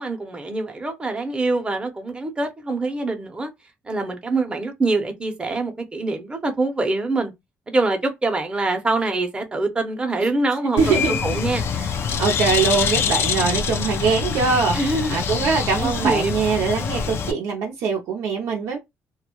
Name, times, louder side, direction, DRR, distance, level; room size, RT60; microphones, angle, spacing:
voice 1, 0.0-3.5 3.8-7.3 7.7-11.7 14.7-15.1 15.8-16.3, right 2 dB, 20° right, 0.7 m, -24 dB
voice 2, 10.7-11.4 11.7-11.9 12.2-18.8, right 5 dB, 90° right, 0.5 m, -22 dB
Bird, 10.8-17.3, left 6 dB, 55° left, 0.4 m, -25 dB
2.2 x 2.0 x 2.9 m
cardioid pair, 105°, 5 cm